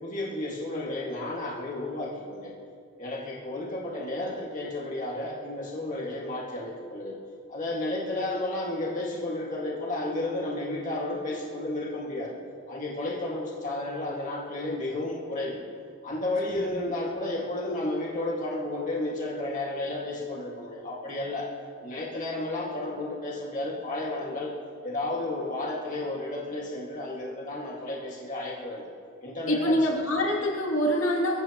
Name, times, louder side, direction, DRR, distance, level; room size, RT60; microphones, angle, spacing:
voice 1, 0.0-2.5 3.0-7.2 7.5-12.4 12.7-15.6 16.0-21.5 21.8-24.5 24.8-28.9 29.2-29.8, left 2 dB, 40° left, -4 dB, 2.0 m, -32 dB
voice 2, 29.5-31.4, equal, 75° left, -2 dB, 2.8 m, -25 dB
24.5 x 14.5 x 3.0 m, 2.2 s
head